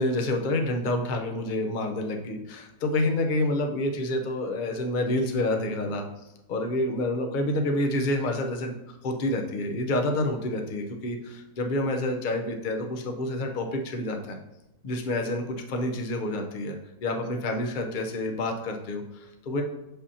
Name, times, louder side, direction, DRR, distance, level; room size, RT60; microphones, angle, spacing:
voice 1, 0.0-6.1 6.5-14.4 14.8-19.6, left 1 dB, 45° left, 3 dB, 0.6 m, -28 dB
7.0 x 5.4 x 2.8 m, 0.92 s
omnidirectional pair, 1.7 m